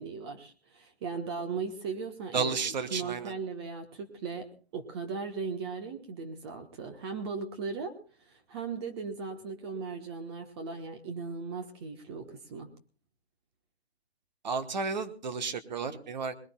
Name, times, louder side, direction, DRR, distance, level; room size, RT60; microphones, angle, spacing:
voice 1, 0.0-2.5 2.9-12.7, right 5 dB, 25° right, 5 dB, 1.3 m, -38 dB
voice 2, 2.3-3.3 14.4-16.3, right 5 dB, 45° right, 9 dB, 1.3 m, -32 dB
24.0 x 20.5 x 2.3 m, 0.37 s
figure-of-eight pair, 145°, 32 cm